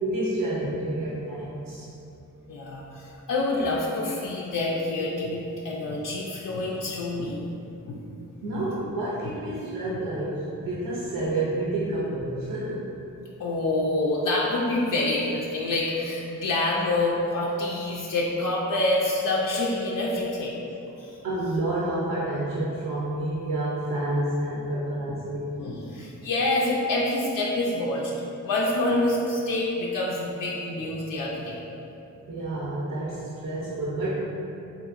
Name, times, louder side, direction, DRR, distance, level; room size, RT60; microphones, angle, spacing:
voice 1, 0.0-1.9 8.4-12.9 21.2-25.5 32.3-34.2, right 1 dB, 80° right, -7 dB, 0.6 m, -29 dB
voice 2, 2.5-7.4 7.9-8.0 8.5-8.6 9.2-9.3 13.4-20.6 20.9-21.2 25.1-25.2 25.6-28.1 28.4-31.6 33.6-33.7, left 2 dB, 75° left, -5 dB, 0.5 m, -27 dB
3.6 x 2.8 x 2.4 m, 2.8 s
cardioid pair, 65°, 32 cm